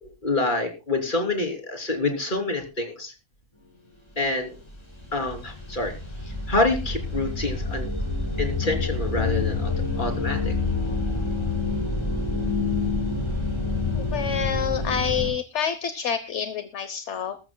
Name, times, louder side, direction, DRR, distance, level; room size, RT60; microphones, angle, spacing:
voice 1, 0.0-3.1 4.2-4.6 5.1-6.0 6.5-7.9 8.4-9.7 10.0-10.5, left 2 dB, 40° left, 2 dB, 3.5 m, -27 dB
sound 1, 4.3-4.4 4.6-15.3, left 3 dB, 20° left, 4.6 m, -27 dB
voice 2, 13.9-17.4, left 7 dB, 65° left, 11 dB, 1.3 m, -28 dB
21.0 x 14.0 x 2.2 m, 0.29 s
omnidirectional pair, 1.3 m